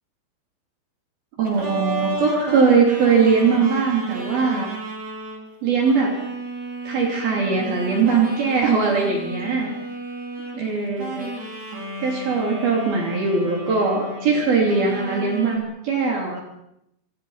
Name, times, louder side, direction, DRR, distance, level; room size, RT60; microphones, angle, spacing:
sound 1, 1.4-5.4 5.8-10.7 11.0-14.3 14.6-15.6, right 2 dB, 35° right, 6.3 m, -32 dB
voice 1, 1.4-4.7 5.6-6.2 6.8-9.7 10.5-11.3 12.0-16.4, right 5 dB, 55° right, 0 dB, 5.0 m, -20 dB
27.0 x 26.0 x 5.8 m, 0.82 s
omnidirectional pair, 5.3 m